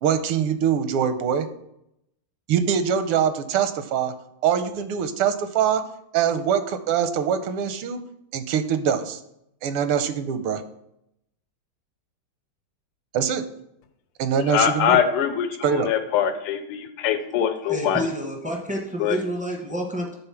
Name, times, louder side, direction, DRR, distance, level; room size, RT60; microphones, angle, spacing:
voice 1, 0.0-1.5 2.5-4.1 4.4-5.8 6.1-8.0 8.3-9.2 9.6-10.6 13.1-13.4 14.2-15.0 15.6-15.9, right 8 dB, 85° right, 10 dB, 1.6 m, -23 dB
voice 2, 14.3-18.1 19.0-19.2, left 9 dB, 90° left, 7 dB, 1.7 m, -23 dB
voice 3, 17.7-20.1, right 1 dB, 10° right, 0 dB, 0.4 m, -29 dB
9.0 x 4.0 x 5.8 m, 0.78 s
omnidirectional pair, 2.4 m